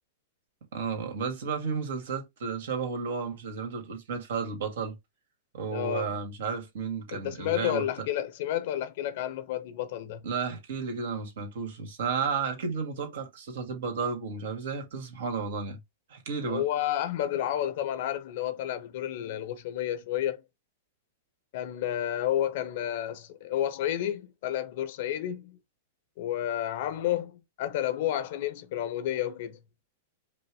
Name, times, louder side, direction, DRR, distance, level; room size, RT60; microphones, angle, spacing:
voice 1, 0.7-5.0 5.5-7.8 10.2-15.8 16.1-16.6, right 5 dB, 70° right, 1.8 m, -32 dB
voice 2, 5.7-6.2 7.1-10.3 16.5-20.4 21.5-25.6 26.2-29.6, left 11 dB, 55° left, 0.8 m, -31 dB
5.1 x 2.0 x 4.8 m
supercardioid pair, 150°, 0 cm